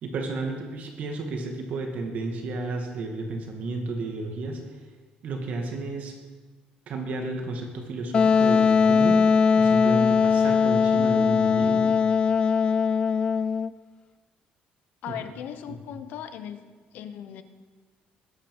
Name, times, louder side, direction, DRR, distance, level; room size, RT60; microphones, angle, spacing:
voice 1, 0.0-4.6 5.2-6.2 6.9-9.2 9.5-11.9 15.1-15.2 15.7-15.8, right 3 dB, 60° right, 2 dB, 2.3 m, -32 dB
Wind instrument woodwind instrument, 8.1-13.7, left 6 dB, 35° left, 0.4 m, -20 dB
voice 2, 15.0-16.6 16.9-17.4, left 9 dB, 75° left, 10 dB, 1.2 m, -37 dB
20.0 x 9.4 x 5.6 m, 1.4 s
cardioid pair, 125°, 3 cm